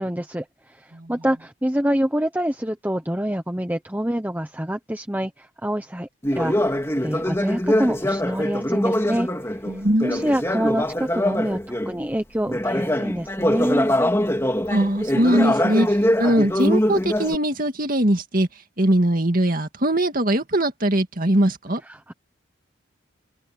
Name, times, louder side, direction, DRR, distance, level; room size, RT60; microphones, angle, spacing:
voice 1, 0.0-6.8 7.0-9.3 10.0-13.9 21.9-22.1, equal, 10° right, 1.0 m, -26 dB
Conversation, 6.2-12.0 12.4-17.3, left 1 dB, 15° left, 2.8 m, -23 dB
voice 2, 9.7-10.3 14.7-18.5 18.8-21.8, right 1 dB, 40° right, 2.3 m, -21 dB
head